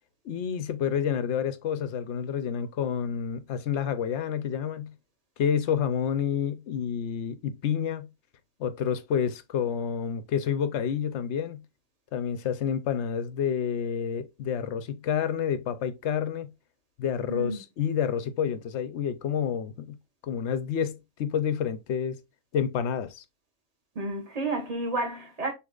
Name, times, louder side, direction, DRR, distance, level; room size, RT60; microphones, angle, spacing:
voice 1, 0.3-4.9 5.4-8.1 8.6-11.6 12.1-16.5 17.0-20.0 20.2-22.2 22.5-23.2, left 8 dB, 60° left, 0.9 m, -29 dB
voice 2, 17.3-17.6 24.0-25.5, right 2 dB, 30° right, 1.7 m, -31 dB
6.2 x 3.2 x 2.4 m
omnidirectional pair, 1.4 m